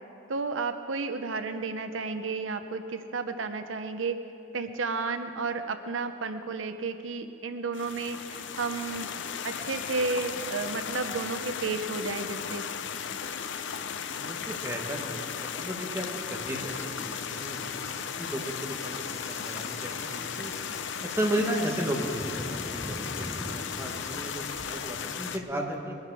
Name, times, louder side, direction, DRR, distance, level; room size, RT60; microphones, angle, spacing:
voice 1, 0.3-4.2 4.5-9.1 9.4-12.6 23.0-23.1, right 4 dB, 85° right, 8 dB, 0.7 m, -32 dB
sound 1, 7.7-25.4, left 7 dB, 65° left, 0.6 m, -36 dB
voice 2, 14.1-15.2 15.5-17.7 18.0-20.5 21.0-25.9, right 1 dB, 15° right, 0 dB, 1.4 m, -34 dB
Cricket / Thunder, 16.4-25.4, left 2 dB, 15° left, 0.5 m, -44 dB
22.0 x 10.5 x 4.8 m, 2.8 s
head